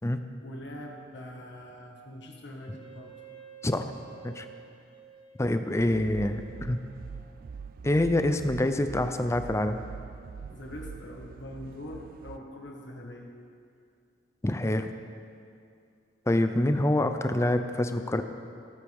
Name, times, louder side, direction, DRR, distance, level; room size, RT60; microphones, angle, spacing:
voice 1, 0.4-3.1 10.5-13.3, left 1 dB, 65° left, 0 dB, 1.6 m, -43 dB
Wind instrument woodwind instrument, 2.6-7.7, right 7 dB, 50° left, 2.6 m, -51 dB
voice 2, 5.4-6.8 7.8-9.8 14.4-14.9 16.3-18.2, left 1 dB, 15° left, 8 dB, 0.5 m, -26 dB
sound 1, 5.8-12.4, right 5 dB, 50° right, 0.3 m, -43 dB
17.5 x 8.3 x 3.5 m, 2.4 s
head